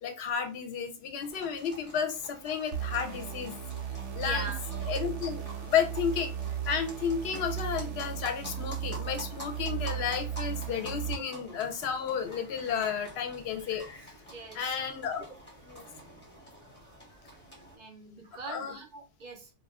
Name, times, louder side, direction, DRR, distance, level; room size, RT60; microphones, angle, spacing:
voice 1, 0.0-3.5 4.1-4.5 4.9-13.8 14.5-15.3 15.6-15.8 18.5-18.8, left 7 dB, 65° left, 6 dB, 0.8 m, -32 dB
sound 1, 1.2-17.8, right 1 dB, 10° left, 0.8 m, -48 dB
sound 2, 2.7-11.2, right 9 dB, 75° right, 0.9 m, -36 dB
voice 2, 4.2-4.7 11.2-11.4 14.3-14.8 17.7-19.5, right 3 dB, 50° right, 3 dB, 0.6 m, -42 dB
2.4 x 2.2 x 3.4 m, 0.32 s
omnidirectional pair, 1.3 m